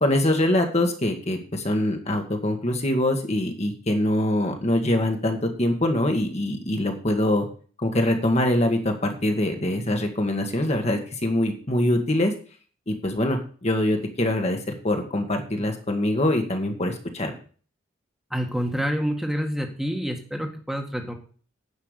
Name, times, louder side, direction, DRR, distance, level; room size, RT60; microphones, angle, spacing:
voice 1, 0.0-7.5 7.8-12.3 12.9-17.3, left 1 dB, 35° left, 4 dB, 1.6 m, -24 dB
voice 2, 18.3-21.1, equal, ahead, 3 dB, 1.6 m, -27 dB
9.8 x 5.7 x 8.2 m, 0.41 s
head